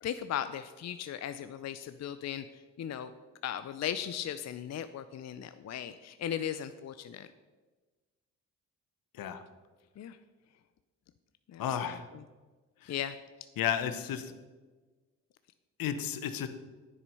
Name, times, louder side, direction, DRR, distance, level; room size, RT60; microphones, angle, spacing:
voice 1, 0.0-3.1 3.4-7.3 10.0-10.2 11.5-11.8 12.9-13.2, left 10 dB, 45° left, 11 dB, 0.6 m, -37 dB
voice 2, 11.6-12.1 12.8-12.9 13.6-14.3 15.8-16.5, left 9 dB, 65° left, 10 dB, 1.1 m, -33 dB
9.8 x 8.0 x 5.5 m, 1.3 s
hypercardioid pair, 45°, 37 cm